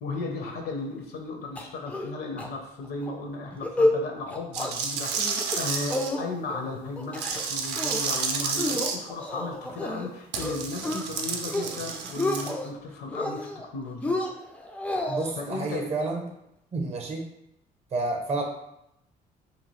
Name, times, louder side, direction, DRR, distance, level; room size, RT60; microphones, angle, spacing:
voice 1, 0.0-14.2 15.4-15.9, left 3 dB, 70° left, 2 dB, 0.7 m, -35 dB
sound 1, 1.6-2.1 2.4-2.5 2.8-3.1 3.5-4.0 4.3-4.7 5.1-5.6 5.9-6.6 7.0-7.4 7.8-8.1 8.6-10.1 10.4-11.0 11.4-11.8 12.0-12.7 13.1-13.7 14.0-15.3, left 2 dB, 10° left, 0.3 m, -29 dB
sound 2, 4.5-6.1 7.1-9.0 10.3-12.5, right 5 dB, 80° right, 0.4 m, -31 dB
voice 2, 15.1-16.2 16.7-17.2 17.9-18.4, right 3 dB, 40° right, 2 dB, 0.6 m, -29 dB
2.8 x 2.3 x 3.0 m, 0.81 s
cardioid pair, 110°, 17 cm